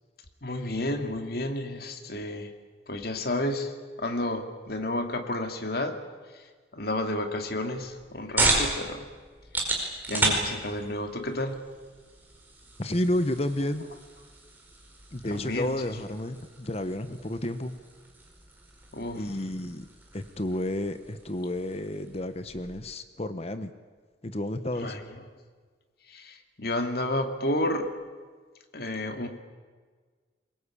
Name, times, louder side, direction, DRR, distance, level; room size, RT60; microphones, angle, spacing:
voice 1, 0.4-2.5 2.9-3.7 4.0-6.0 6.3-6.4 6.7-9.1 10.1-11.6 15.3-15.8 18.9-19.2 24.8-25.1 26.1-27.9 28.7-29.3, left 1 dB, 60° left, 6 dB, 2.4 m, -31 dB
sound 1, 7.7-22.9, right 2 dB, 10° right, 4.8 m, -34 dB
voice 2, 12.8-13.8 15.1-17.8 19.2-19.9 20.1-23.7 24.2-24.9, left 1 dB, 35° left, 11 dB, 1.1 m, -31 dB
23.0 x 22.0 x 8.5 m, 1.5 s
head